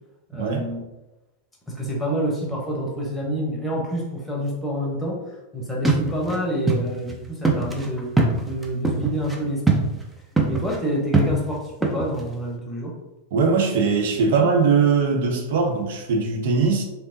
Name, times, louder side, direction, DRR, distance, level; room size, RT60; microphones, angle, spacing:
voice 1, 0.3-0.8 1.7-5.2 5.5-8.1 8.4-9.9 10.5-12.9, right 1 dB, 10° left, -2 dB, 0.9 m, -27 dB
sound 1, 5.8-6.4 6.7-6.8 7.1-7.2 7.4-9.4 9.7-10.1 10.4-10.8 11.1-12.3, right 3 dB, 10° right, 0.5 m, -22 dB
voice 2, 13.3-16.8, right 5 dB, 55° right, 2 dB, 0.6 m, -20 dB
3.3 x 2.8 x 2.7 m, 0.99 s
figure-of-eight pair, 90°, 0 cm